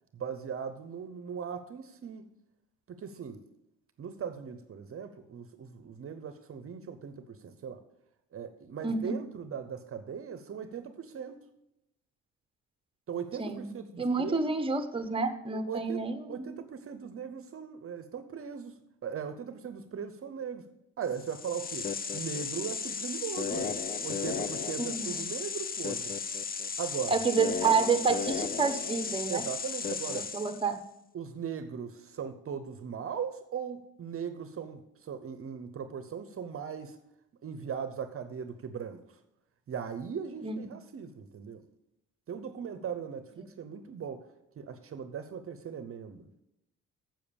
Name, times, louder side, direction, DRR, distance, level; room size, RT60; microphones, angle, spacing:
voice 1, 0.1-2.3 2.9-3.4 4.0-7.8 8.3-11.4 13.1-14.5 15.5-18.8 19.0-20.7 21.0-23.7 24.0-26.1 26.8-27.2 29.3-30.3 31.1-37.0 37.4-39.0 39.7-41.6 42.3-44.2 44.6-46.3, right 7 dB, 50° right, 11 dB, 0.8 m, -39 dB
voice 2, 8.8-9.1 13.4-13.6 14.0-16.5 24.8-25.2 27.1-29.4 30.3-30.8 40.4-40.7 43.4-43.5, right 4 dB, 15° right, 9 dB, 1.0 m, -29 dB
sound 1, 21.1-30.7, left 5 dB, 30° left, 0.6 m, -35 dB
7.7 x 7.0 x 6.9 m, 0.86 s
cardioid pair, 90°, 30 cm